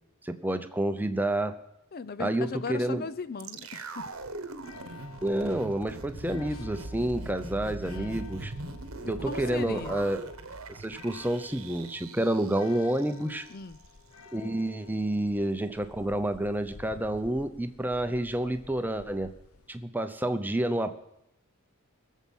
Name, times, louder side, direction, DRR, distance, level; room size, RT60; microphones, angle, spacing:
voice 1, 0.2-1.6 2.2-3.0 5.2-8.5 9.1-10.3 10.7-13.5 14.3-19.3 19.7-21.0, right 1 dB, 10° right, 9 dB, 0.7 m, -29 dB
voice 2, 1.9-4.2 6.5-6.6 7.9-8.2 9.0-10.0 13.5-13.8, left 4 dB, 45° left, 15 dB, 0.5 m, -38 dB
sound 1, 3.4-13.5 13.8-13.9, right 2 dB, 80° right, 1.1 m, -41 dB
sound 2, 4.0-19.8, left 4 dB, 90° left, 0.9 m, -51 dB
22.0 x 7.4 x 5.5 m, 0.84 s
head